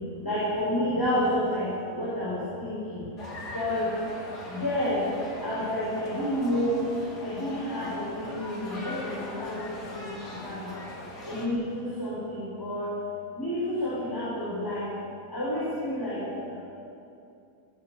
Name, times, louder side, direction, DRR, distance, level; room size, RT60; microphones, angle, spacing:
voice 1, 0.2-3.1 3.5-3.9 4.5-5.1 5.4-6.8 7.2-10.7 11.2-12.9 13.3-14.9 15.3-16.6, left 1 dB, 10° left, -10 dB, 7.1 m, -30 dB
sound 1, 3.2-11.5, left 1 dB, 75° left, 3.4 m, -40 dB
23.0 x 18.5 x 7.1 m, 2.6 s
omnidirectional pair, 1.7 m